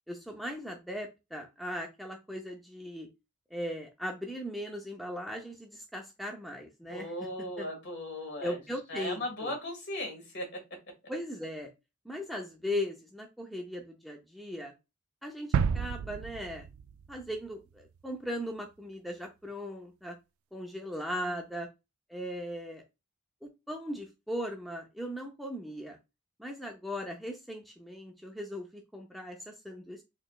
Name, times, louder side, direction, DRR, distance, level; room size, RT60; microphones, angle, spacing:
voice 1, 0.1-3.1 3.5-7.1 7.6-7.7 8.4-9.5 11.1-11.7 12.0-14.7 15.2-16.6 17.1-20.1 20.5-21.7 22.1-22.8 23.4-26.0 26.4-30.0, equal, ahead, 1 dB, 0.4 m, -38 dB
voice 2, 6.9-8.6 8.9-10.5 21.1-21.5, left 1 dB, 55° left, 3 dB, 1.6 m, -37 dB
sound 1, 15.5-17.5 17.9-18.0, right 6 dB, 85° right, 0.3 m, -31 dB
4.0 x 3.1 x 2.3 m, 0.24 s
head